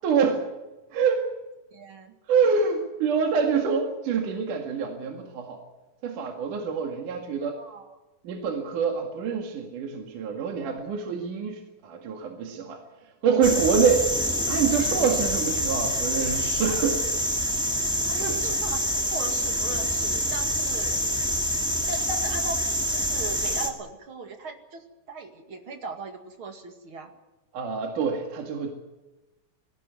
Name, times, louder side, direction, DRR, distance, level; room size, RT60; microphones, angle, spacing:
voice 1, 0.0-0.5 0.9-1.3 2.3-5.6 6.0-7.6 8.2-12.8 13.2-14.1 14.5-17.0 18.1-18.4 27.5-28.7, right 6 dB, 65° right, 3 dB, 3.4 m, -26 dB
voice 2, 1.7-2.2 7.4-8.0 18.0-18.8 19.1-21.0 21.9-22.6 22.8-27.1, right 3 dB, 40° right, 5 dB, 2.5 m, -38 dB
sound 1, 13.4-23.7, equal, ahead, 1.6 m, -26 dB
20.0 x 17.0 x 9.5 m, 1.1 s
omnidirectional pair, 4.0 m